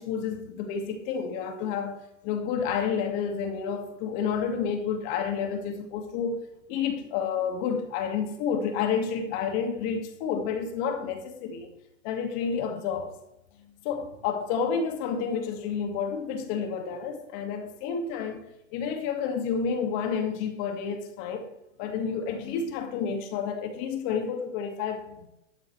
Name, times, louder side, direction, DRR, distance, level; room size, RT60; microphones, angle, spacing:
voice 1, 0.0-6.4 6.7-11.7 12.0-13.1 13.8-18.4 18.7-21.5 21.8-25.3, left 6 dB, 40° left, 5 dB, 2.1 m, -30 dB
13.0 x 12.0 x 3.3 m, 0.83 s
hypercardioid pair, 140°, 37 cm